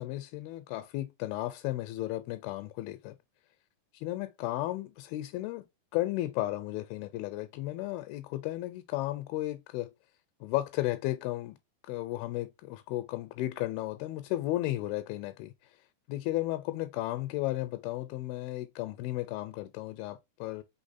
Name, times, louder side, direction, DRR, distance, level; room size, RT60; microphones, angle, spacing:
voice 1, 0.0-3.2 3.9-5.6 5.9-9.9 10.4-11.6 11.9-15.5 16.1-20.6, left 16 dB, 85° left, 2.4 m, -34 dB
5.3 x 3.5 x 2.6 m
omnidirectional pair, 4.3 m